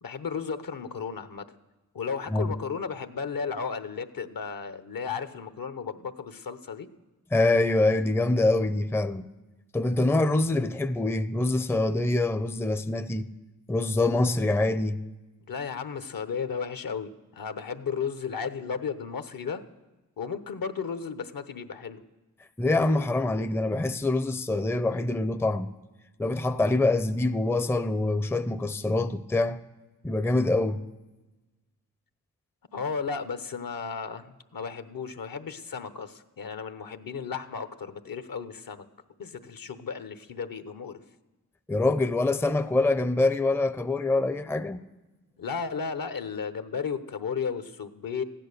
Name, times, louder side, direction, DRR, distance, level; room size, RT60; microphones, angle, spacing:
voice 1, 0.0-1.4 1.9-6.9 15.5-19.6 20.2-22.0 32.7-38.8 39.2-41.0 45.4-48.2, left 6 dB, 65° left, 1.0 m, -34 dB
voice 2, 7.3-9.2 9.7-13.3 13.7-15.0 22.6-25.7 26.2-29.6 30.0-30.8 41.7-44.8, left 2 dB, 5° left, 0.5 m, -25 dB
15.5 x 10.5 x 6.7 m
cardioid pair, 55°, 37 cm